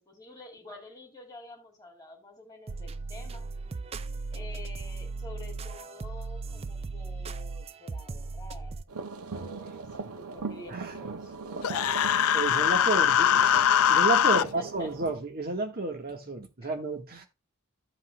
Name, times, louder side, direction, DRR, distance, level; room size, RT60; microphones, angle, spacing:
voice 1, 0.0-3.4 4.3-12.3 14.3-14.9 16.6-16.7, left 2 dB, 20° left, 2.6 m, -48 dB
sound 1, 2.7-8.8, right 3 dB, 25° right, 0.3 m, -37 dB
sound 2, 8.9-15.1, right 4 dB, 80° right, 0.7 m, -39 dB
Human voice, 11.6-14.4, left 10 dB, 70° left, 0.4 m, -22 dB
voice 2, 12.3-17.3, right 3 dB, 45° right, 1.7 m, -32 dB
14.5 x 5.6 x 2.3 m
head